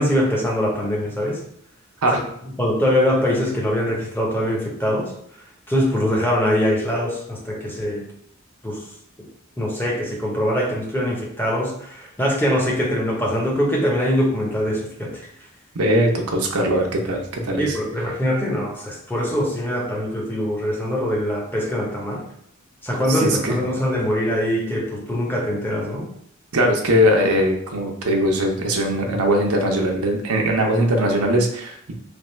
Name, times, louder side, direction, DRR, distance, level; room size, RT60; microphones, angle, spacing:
voice 1, 0.0-1.4 2.1-2.2 2.6-5.1 5.7-8.1 8.6-8.8 9.2-9.3 9.6-15.1 17.6-22.2 22.8-26.1, equal, 10° left, -2 dB, 0.7 m, -23 dB
voice 2, 15.7-17.8 23.1-23.6 26.5-31.9, equal, 85° right, 1 dB, 0.7 m, -20 dB
3.4 x 2.3 x 4.3 m, 0.67 s
head